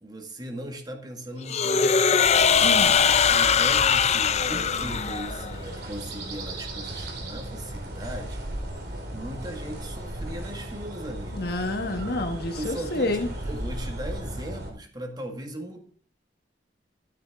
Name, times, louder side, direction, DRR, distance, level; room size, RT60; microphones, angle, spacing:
voice 1, 0.0-2.4 3.0-8.4 8.8-11.5 12.5-15.8, right 1 dB, 20° right, 4 dB, 1.9 m, -38 dB
sound 1, 1.5-5.5, left 6 dB, 35° left, 0.5 m, -21 dB
sound 2, 2.2-14.7, right 1 dB, 60° right, 3.3 m, -36 dB
voice 2, 2.6-2.9 11.3-13.3, left 2 dB, 55° left, 6 dB, 1.5 m, -28 dB
12.5 x 9.5 x 3.7 m, 0.43 s
head